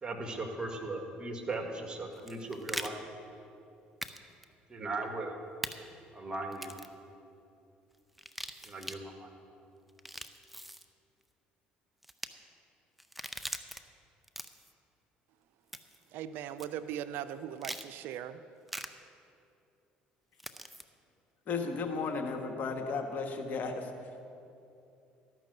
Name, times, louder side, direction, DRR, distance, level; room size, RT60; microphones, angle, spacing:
voice 1, 0.0-3.0 4.7-5.4 6.1-6.7 8.6-9.3, right 2 dB, 25° right, 4 dB, 1.7 m, -38 dB
sound 1, 2.1-2.9 4.0-4.2 4.4-4.5 5.6-5.7 6.5-6.9 8.1-9.0 9.9-10.8 12.0-12.3 13.0-13.8 14.2-14.7 15.7-16.0 16.6-16.7 17.6-17.9 18.7-18.9 20.4-20.8, right 1 dB, 5° right, 0.6 m, -41 dB
voice 2, 16.1-18.4, right 10 dB, 70° right, 12 dB, 0.4 m, -39 dB
voice 3, 21.5-23.9, left 4 dB, 50° left, 4 dB, 1.3 m, -34 dB
13.0 x 6.0 x 7.7 m, 2.7 s
supercardioid pair, 75°, 4 cm